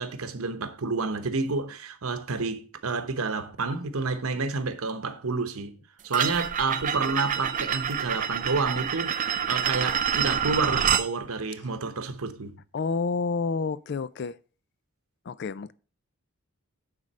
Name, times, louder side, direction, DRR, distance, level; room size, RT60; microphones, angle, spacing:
voice 1, 0.0-5.8 6.0-12.6, right 4 dB, 90° right, 1.0 m, -29 dB
sound 1, 6.1-11.1, right 8 dB, 35° right, 0.4 m, -27 dB
voice 2, 12.7-14.4 15.3-15.7, left 4 dB, 50° left, 0.4 m, -29 dB
9.6 x 3.9 x 5.4 m
head